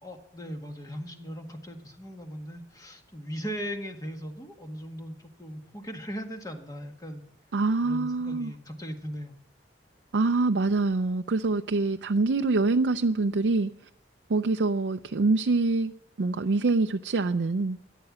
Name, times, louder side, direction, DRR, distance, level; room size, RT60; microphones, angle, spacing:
voice 1, 0.0-7.2 7.8-9.3, equal, 20° left, 1.8 m, -38 dB
voice 2, 7.5-8.5 10.1-13.7 14.3-15.9 16.2-17.8, right 3 dB, 90° right, 0.5 m, -25 dB
13.5 x 11.0 x 7.4 m
head